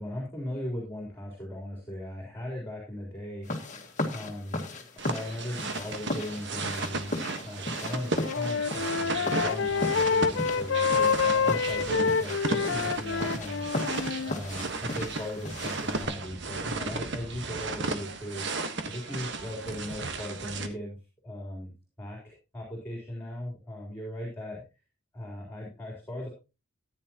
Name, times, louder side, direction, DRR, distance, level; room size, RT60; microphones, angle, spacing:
voice 1, 0.0-3.5 3.8-4.7 5.1-13.7 14.3-18.5 18.9-21.0 21.2-21.7 22.0-24.6 25.1-26.3, left 1 dB, 10° left, -1 dB, 3.8 m, -38 dB
sound 1, 3.4-16.1, left 1 dB, 35° left, 1.8 m, -37 dB
sound 2, 5.0-20.7, right 3 dB, 60° right, 1.4 m, -35 dB
Wind instrument woodwind instrument, 7.9-14.4, left 5 dB, 60° left, 0.5 m, -27 dB
14.5 x 10.0 x 3.0 m, 0.29 s
head